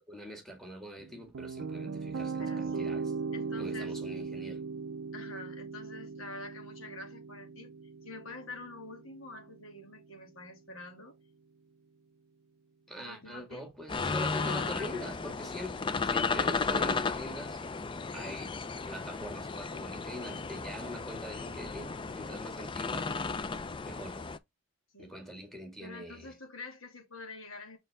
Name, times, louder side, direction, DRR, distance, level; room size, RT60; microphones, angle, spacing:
voice 1, 0.1-3.1 3.6-4.6 12.9-15.8 16.0-17.6 18.1-18.6 18.9-23.1 23.8-24.2 25.0-26.3, equal, ahead, 2.0 m, -43 dB
sound 1, 1.0-10.1, right 4 dB, 75° right, 0.5 m, -39 dB
voice 2, 2.4-2.9 3.3-4.0 5.1-7.7 8.0-11.2 13.0-13.7 14.2-15.0 24.9-25.1 25.8-27.8, left 2 dB, 90° left, 2.6 m, -46 dB
sound 2, 13.9-24.4, left 4 dB, 25° left, 0.4 m, -34 dB
sound 3, 14.0-15.9, equal, 60° left, 3.5 m, -49 dB
6.6 x 4.6 x 3.4 m
head